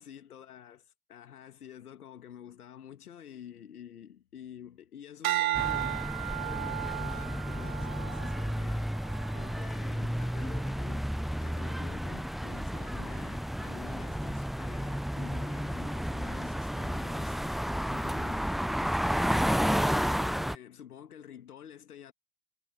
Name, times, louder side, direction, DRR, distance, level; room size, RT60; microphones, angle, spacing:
voice 1, 0.0-18.5 19.2-22.1, left 9 dB, 80° left, 1.8 m, -49 dB
sound 1, 5.2-9.7 10.3-10.7, right 15 dB, 65° right, 1.2 m, -35 dB
sound 2, 5.5-20.5, equal, ahead, 0.6 m, -32 dB
figure-of-eight pair, 80°, 45 cm